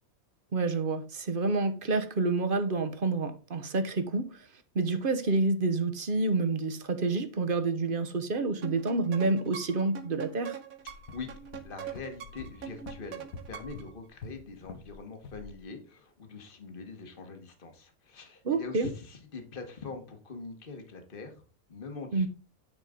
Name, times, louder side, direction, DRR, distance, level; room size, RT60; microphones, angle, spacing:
voice 1, 0.5-4.3 4.7-10.6 18.4-18.9 22.1-22.3, right 3 dB, 40° right, 1.1 m, -28 dB
sound 1, 8.6-13.9, right 8 dB, 80° right, 1.4 m, -43 dB
voice 2, 10.8-11.3 11.6-21.4 21.7-22.3, left 4 dB, 40° left, 1.6 m, -43 dB
sound 2, 10.9-15.0 15.2-15.5, left 3 dB, 75° left, 1.7 m, -46 dB
9.7 x 4.9 x 3.8 m
omnidirectional pair, 1.5 m